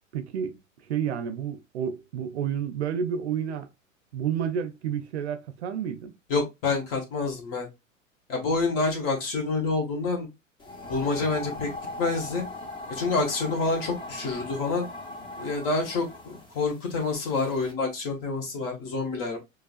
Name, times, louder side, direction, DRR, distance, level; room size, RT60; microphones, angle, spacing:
voice 1, 0.1-0.6 0.9-3.7 4.1-6.1, right 8 dB, 55° right, 0.6 m, -30 dB
voice 2, 6.3-7.7 8.3-10.3 10.9-11.7 12.0-12.4 12.9-14.9 15.4-19.4, left 3 dB, 45° left, 1.6 m, -27 dB
sound 1, 10.6-17.7, left 2 dB, 10° left, 0.8 m, -40 dB
6.5 x 2.3 x 2.4 m
figure-of-eight pair, 90°, 39 cm